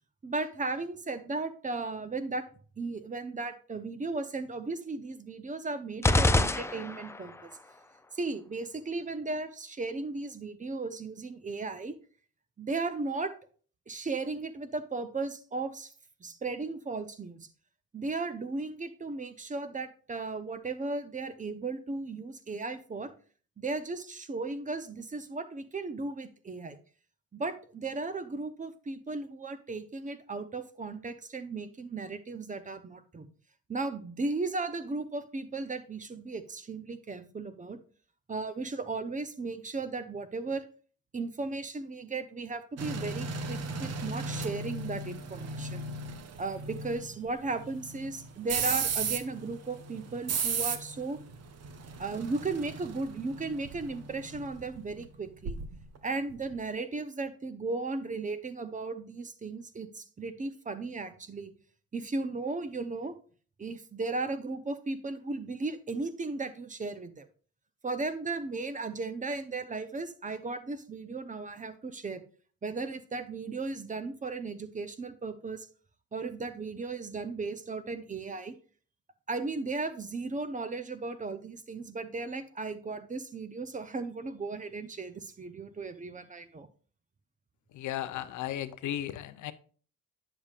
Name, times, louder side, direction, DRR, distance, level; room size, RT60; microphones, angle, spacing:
voice 1, 0.2-2.4 2.8-7.5 8.1-12.0 12.6-13.3 13.9-15.9 16.2-17.5 17.9-23.1 23.6-26.8 27.3-33.3 33.7-37.8 38.3-40.6 41.1-45.9 46.4-51.2 52.0-55.6 56.0-61.5 61.9-63.2 63.6-67.3 67.8-72.2 72.6-75.7 76.1-78.6 79.3-86.7, right 3 dB, 25° right, 11 dB, 0.8 m, -36 dB
sound 1, 6.0-7.3, left 2 dB, 10° left, 0.4 m, -25 dB
sound 2, 42.8-56.0 56.3-56.5, right 5 dB, 55° right, 0.9 m, -36 dB
voice 2, 87.7-89.5, left 12 dB, 75° left, 12 dB, 0.7 m, -35 dB
8.9 x 7.0 x 2.4 m, 0.41 s
cardioid pair, 90°, 30 cm